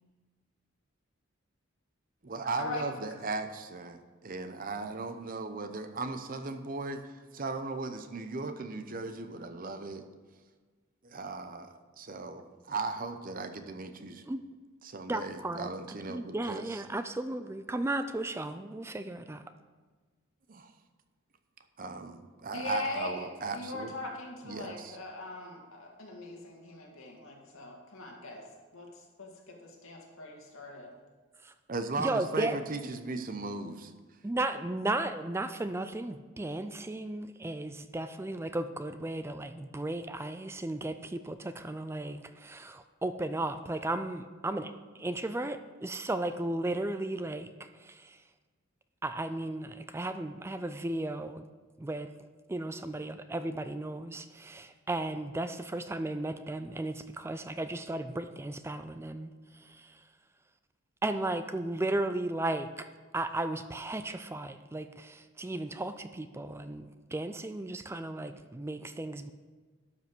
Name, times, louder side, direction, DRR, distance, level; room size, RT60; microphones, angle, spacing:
voice 1, 2.2-10.0 11.0-14.2 14.8-16.8 20.5-20.7 21.8-24.0 24.4-25.0 31.7-33.9, right 3 dB, 45° right, 8 dB, 0.7 m, -37 dB
voice 2, 15.1-15.7 16.1-19.4 31.4-31.5 32.0-32.6 34.2-48.2 49.0-51.5 51.8-52.1 52.5-60.0 61.0-62.9 63.1-69.3, right 2 dB, 10° right, 10 dB, 0.4 m, -35 dB
voice 3, 22.5-23.3 23.5-28.4 28.7-30.9, left 2 dB, 90° left, 0 dB, 2.2 m, -41 dB
12.0 x 5.5 x 6.0 m, 1.4 s
head